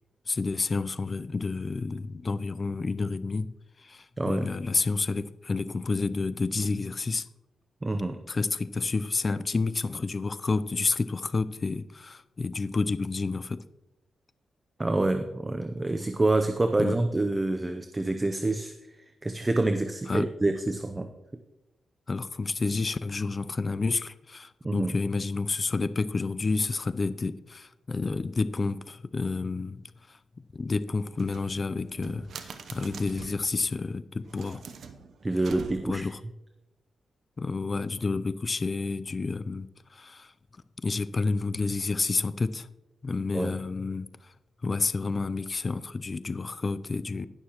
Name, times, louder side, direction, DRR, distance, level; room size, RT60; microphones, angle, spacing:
voice 1, 0.3-7.3 8.3-13.6 16.8-17.0 20.1-20.3 22.1-29.8 30.1-30.2 30.5-34.6 35.8-36.2 37.4-40.3 40.8-42.7 43.0-44.3 44.6-47.3, left 3 dB, 35° left, 14 dB, 0.4 m, -30 dB
voice 2, 4.2-4.5 7.8-8.2 14.8-18.7 19.2-21.1 24.6-25.0 35.2-36.1 43.3-43.6, right 2 dB, 20° right, 7 dB, 0.6 m, -27 dB
sound 1, 31.1-33.5 34.2-36.1, right 5 dB, 70° right, 0.8 m, -44 dB
19.0 x 6.6 x 3.0 m, 0.98 s
cardioid pair, 90°, 0 cm